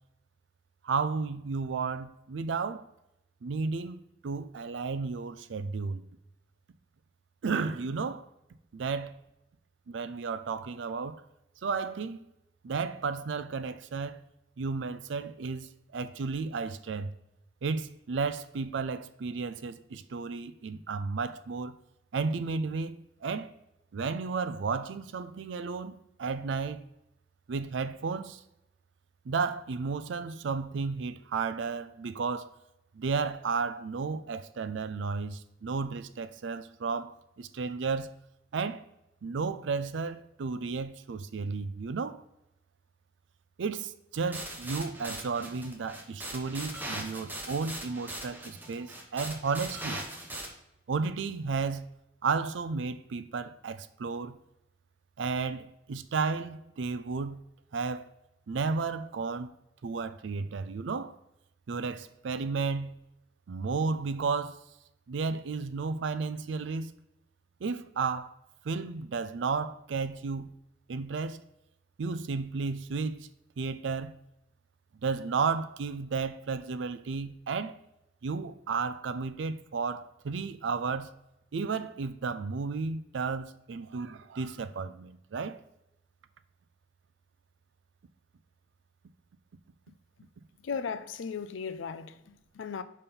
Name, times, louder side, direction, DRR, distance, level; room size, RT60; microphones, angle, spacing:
voice 1, 0.8-2.9 3.4-6.0 7.4-8.3 8.7-9.2 9.9-11.2 11.6-12.2 12.6-14.2 14.6-17.1 17.6-21.8 22.1-23.5 23.9-26.8 27.5-28.4 29.3-32.6 32.9-38.1 38.5-38.8 39.2-42.2 43.6-50.0 50.9-51.9 52.2-54.4 55.2-57.4 57.7-58.1 58.5-59.5 59.8-61.2 61.7-62.9 63.5-64.6 65.1-66.9 67.6-68.3 68.6-70.5 70.9-71.4 72.0-73.3 73.6-74.2 75.0-77.8 78.2-81.1 81.5-85.6, right 4 dB, 70° right, 0.4 m, -33 dB
sound 1, 44.3-50.5, right 1 dB, 10° right, 0.9 m, -40 dB
voice 2, 90.6-92.8, left 6 dB, 90° left, 0.5 m, -36 dB
5.3 x 4.3 x 5.4 m
head